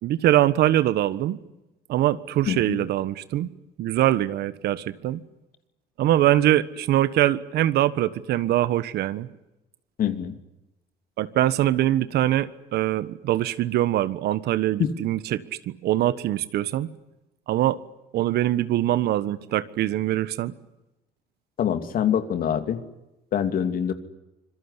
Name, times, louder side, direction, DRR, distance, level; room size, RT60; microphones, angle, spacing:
voice 1, 0.0-1.4 1.9-3.5 3.8-5.2 6.0-9.3 11.2-16.9 17.5-17.8 18.1-20.5, right 13 dB, 75° right, 15 dB, 1.4 m, -23 dB
voice 2, 2.5-2.8 10.0-10.3 21.6-22.8 23.3-23.9, left 9 dB, 60° left, 9 dB, 2.7 m, -25 dB
26.0 x 22.0 x 9.8 m, 0.93 s
cardioid pair, 110°, 17 cm